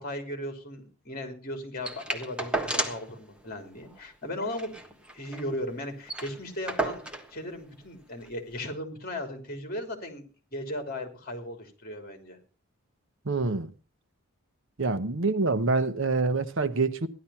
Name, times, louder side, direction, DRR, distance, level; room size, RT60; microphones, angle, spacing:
voice 1, 0.0-10.2 10.5-12.4, left 1 dB, 40° left, 3.3 m, -37 dB
sound 1, 1.8-3.1 3.5-3.6 3.8-4.0 4.4-5.5 5.8-5.9 6.1-7.3 8.2-8.3, right 1 dB, 5° right, 1.4 m, -32 dB
voice 2, 13.2-13.7 14.8-17.1, right 3 dB, 60° right, 0.9 m, -26 dB
15.0 x 11.5 x 5.8 m
head